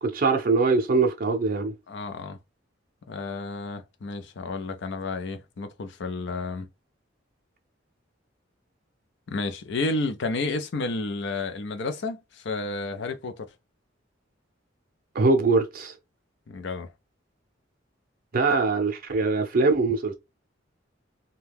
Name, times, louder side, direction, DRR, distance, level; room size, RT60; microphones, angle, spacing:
voice 1, 0.0-1.7 15.1-15.9 18.3-20.1, right 3 dB, 50° right, 0.5 m, -22 dB
voice 2, 1.9-2.4 3.1-6.7 9.3-13.5 16.5-16.9, left 3 dB, 65° left, 0.5 m, -31 dB
2.7 x 2.2 x 3.4 m
head